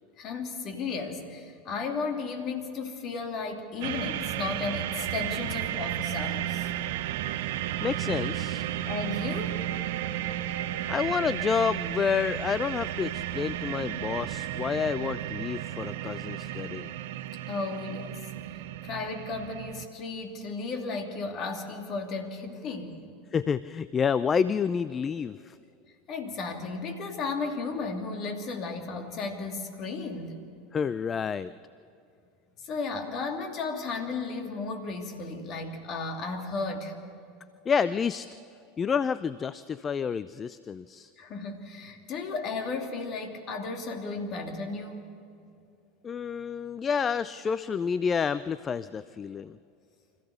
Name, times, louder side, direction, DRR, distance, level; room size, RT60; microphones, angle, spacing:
voice 1, 0.2-6.7 8.9-9.6 17.5-18.2 18.8-23.0 26.1-30.5 32.6-37.0 41.2-45.1, left 4 dB, 45° left, 4 dB, 2.7 m, -34 dB
sound 1, 3.8-19.9, right 12 dB, 65° right, 0.7 m, -33 dB
voice 2, 7.8-8.7 10.9-16.9 23.3-25.6 30.7-31.5 37.7-38.3 38.8-41.1 46.0-49.6, left 6 dB, 30° left, 16 dB, 0.4 m, -29 dB
25.5 x 15.0 x 6.9 m, 2.6 s
hypercardioid pair, 80°, 0 cm